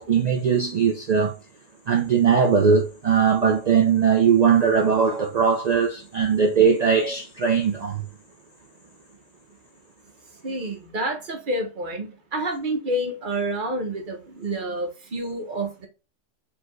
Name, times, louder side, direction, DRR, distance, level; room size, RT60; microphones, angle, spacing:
voice 1, 0.0-1.3 1.9-8.0, right 6 dB, 60° right, 0.4 m, -20 dB
voice 2, 10.4-15.9, right 1 dB, 45° right, 1.0 m, -29 dB
4.2 x 2.8 x 3.1 m
omnidirectional pair, 1.3 m